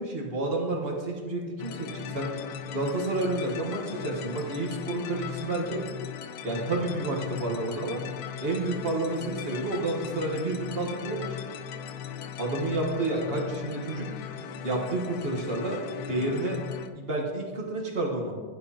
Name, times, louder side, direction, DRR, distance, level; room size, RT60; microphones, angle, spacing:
voice 1, 0.0-2.3 2.7-5.8 6.4-8.0 8.4-11.3 12.4-14.1 14.6-16.6 16.9-18.3, right 2 dB, 35° right, -1 dB, 1.2 m, -30 dB
sound 1, 1.6-16.9, left 7 dB, 70° left, 1.2 m, -38 dB
11.5 x 7.8 x 2.9 m, 1.5 s
omnidirectional pair, 2.2 m